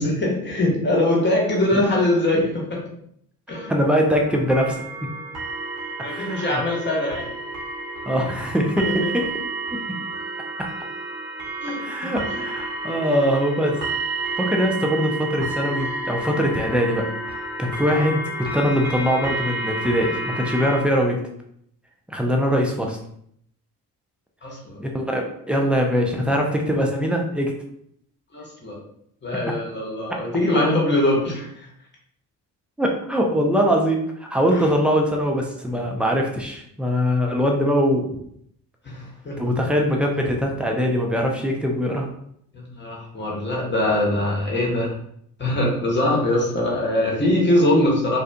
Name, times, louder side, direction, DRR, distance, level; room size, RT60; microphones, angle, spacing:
voice 1, 0.0-2.8 3.5-3.7 6.0-7.2 8.8-8.9 11.6-12.4 24.4-24.8 28.3-28.7 29.2-31.7 34.5-34.6 38.8-39.6 42.5-45.0 45.4-48.2, left 1 dB, 25° left, -3 dB, 1.0 m, -22 dB
sound 1, 3.5-20.8, right 2 dB, 55° right, 0.9 m, -31 dB
voice 2, 3.7-4.8 6.0-6.6 8.1-9.3 11.8-13.8 14.4-17.1 17.6-21.2 22.1-23.0 24.8-27.5 32.8-38.1 39.4-42.1, equal, ahead, 0 dB, 0.4 m, -22 dB
2.5 x 2.3 x 2.2 m, 0.69 s
hypercardioid pair, 40°, 48 cm